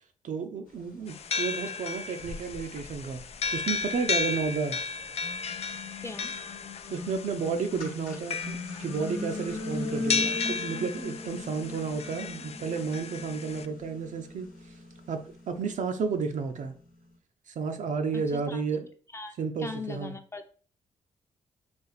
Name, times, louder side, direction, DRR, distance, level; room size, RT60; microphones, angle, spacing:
voice 1, 0.2-3.2 3.5-4.8 6.9-14.5 15.1-16.7 17.5-18.9 19.4-20.1, right 5 dB, 60° right, 6 dB, 0.6 m, -32 dB
sound 1, 1.1-13.7, left 5 dB, 45° left, 0.4 m, -34 dB
sound 2, 1.5-1.6 2.1-4.5 5.0-16.3, left 2 dB, 75° left, 1.0 m, -39 dB
voice 2, 6.0-6.3 18.1-18.6 19.1-20.5, left 3 dB, 20° left, 6 dB, 0.6 m, -40 dB
4.1 x 2.5 x 4.0 m, 0.43 s
supercardioid pair, 50°, 14 cm